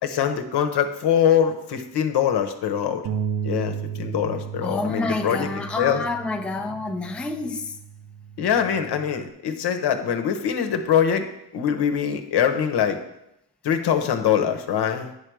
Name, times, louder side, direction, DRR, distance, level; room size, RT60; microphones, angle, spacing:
voice 1, 0.0-3.1 3.4-5.5 5.8-6.0 8.4-13.0 13.6-15.1, left 8 dB, 60° left, 6 dB, 1.0 m, -23 dB
Bass guitar, 3.0-9.3, right 7 dB, 45° right, 0.6 m, -34 dB
voice 2, 4.6-7.8, left 3 dB, 5° left, 3 dB, 0.6 m, -28 dB
9.6 x 3.4 x 6.2 m, 0.85 s
cardioid pair, 90°, 46 cm